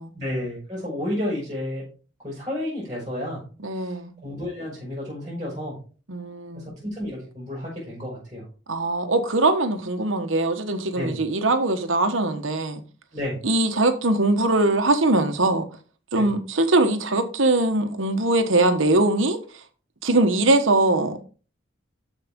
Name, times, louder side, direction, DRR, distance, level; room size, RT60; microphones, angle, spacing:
voice 1, 0.1-1.8 2.2-3.4 4.2-5.8 6.5-8.4 10.9-11.2 13.1-13.4 16.1-16.3, left 1 dB, 20° right, 5.2 m, -31 dB
voice 2, 3.6-4.1 6.1-6.7 8.7-12.8 13.4-15.7 16.1-19.6 20.0-21.2, right 2 dB, 90° right, 1.3 m, -21 dB
13.0 x 5.2 x 3.7 m
head